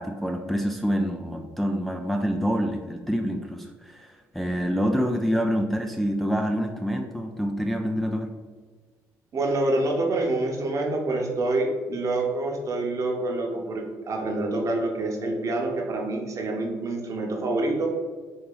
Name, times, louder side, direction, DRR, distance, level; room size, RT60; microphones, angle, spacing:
voice 1, 0.0-8.4, equal, ahead, 2 dB, 0.4 m, -27 dB
voice 2, 9.3-17.9, right 2 dB, 50° right, 1 dB, 0.9 m, -27 dB
4.2 x 2.7 x 3.8 m, 1.4 s
supercardioid pair, 70°, 7 cm